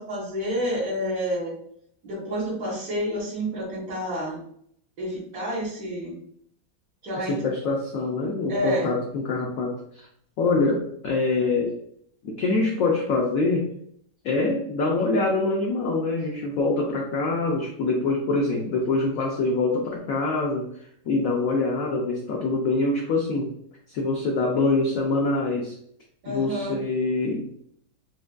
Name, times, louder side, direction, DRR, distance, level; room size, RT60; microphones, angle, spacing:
voice 1, 0.0-1.6 2.0-4.4 5.0-6.2 7.0-7.4 8.5-8.9 26.2-26.8, equal, 50° right, -9 dB, 1.6 m, -29 dB
voice 2, 7.3-10.1 10.4-11.7 12.2-13.7 14.2-20.7 21.1-23.5 23.9-25.7 26.3-27.5, left 3 dB, 75° left, 0 dB, 0.7 m, -24 dB
6.0 x 2.4 x 2.2 m, 0.67 s
omnidirectional pair, 2.1 m